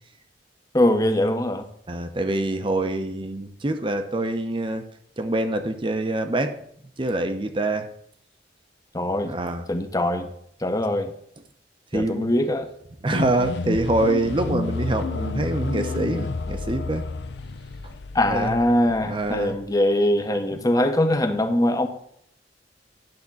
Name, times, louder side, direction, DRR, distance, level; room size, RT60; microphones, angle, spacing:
voice 1, 0.7-1.7 8.9-9.4 9.7-10.3 10.6-11.1 11.9-12.7 18.1-21.9, left 1 dB, 20° left, 7 dB, 0.8 m, -22 dB
voice 2, 1.9-4.8 5.2-6.5 7.0-7.9 9.2-9.6 11.9-12.3 13.0-17.0 18.3-18.6 19.1-19.6, right 2 dB, 30° right, 8 dB, 0.7 m, -25 dB
sound 1, 13.1-19.7, left 3 dB, 75° left, 0.6 m, -31 dB
10.5 x 3.6 x 7.1 m, 0.69 s
head